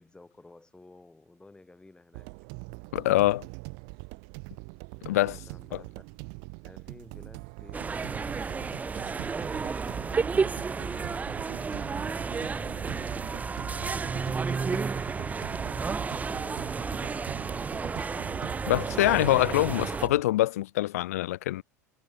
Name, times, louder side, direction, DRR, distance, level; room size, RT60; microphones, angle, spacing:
voice 1, 0.0-2.3 5.0-6.1 6.6-15.2 15.6-18.1, left 2 dB, 10° left, 7.5 m, -54 dB
sound 1, 2.1-20.2, right 40 dB or more, 55° right, 6.5 m, -43 dB
voice 2, 2.9-3.5 5.1-5.3 18.7-21.6, left 15 dB, 65° left, 0.4 m, -24 dB
sound 2, 7.7-20.1, right 5 dB, 15° right, 1.2 m, -32 dB
figure-of-eight pair, 80°, 9 cm